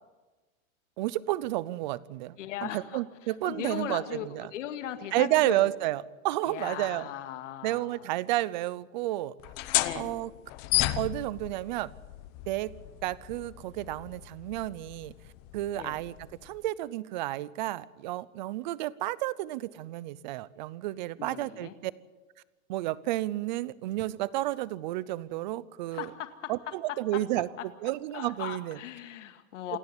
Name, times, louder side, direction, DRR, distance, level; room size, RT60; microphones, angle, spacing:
voice 1, 1.0-2.4 2.6-4.5 5.1-7.1 7.6-9.3 9.9-10.3 11.0-11.9 12.5-12.7 13.0-15.1 15.5-16.1 16.4-21.9 22.7-26.1 26.5-28.8, right 16 dB, 35° right, 20 dB, 0.6 m, -31 dB
voice 2, 2.4-3.0 3.4-5.7 6.4-8.1 9.8-10.2 15.7-16.0 21.2-21.7 25.9-26.5 26.9-27.0 28.1-29.8, left 11 dB, 65° left, 8 dB, 2.2 m, -38 dB
sound 1, 9.4-16.7, left 15 dB, 25° left, 0.8 m, -34 dB
28.0 x 10.5 x 9.9 m, 1.2 s
supercardioid pair, 165°, 40 cm